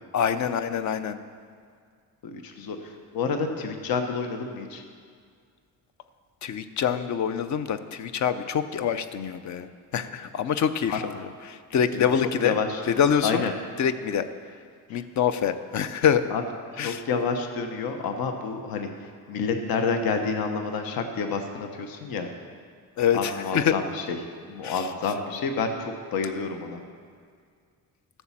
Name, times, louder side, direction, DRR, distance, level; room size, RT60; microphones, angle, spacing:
voice 1, 0.1-1.2 6.4-12.6 12.9-13.5 13.8-14.2 14.9-16.3 16.8-17.0 23.0-23.7 24.6-24.9, left 8 dB, 50° left, 11 dB, 0.6 m, -25 dB
voice 2, 2.2-4.8 10.9-11.0 11.9-12.0 12.4-12.8 13.2-13.5 14.9-15.0 16.3-16.4 16.8-18.9 19.3-22.3 23.1-24.2 24.5-26.8, left 5 dB, 75° left, 5 dB, 1.0 m, -29 dB
12.5 x 6.9 x 7.3 m, 2.1 s
cardioid pair, 170°, 36 cm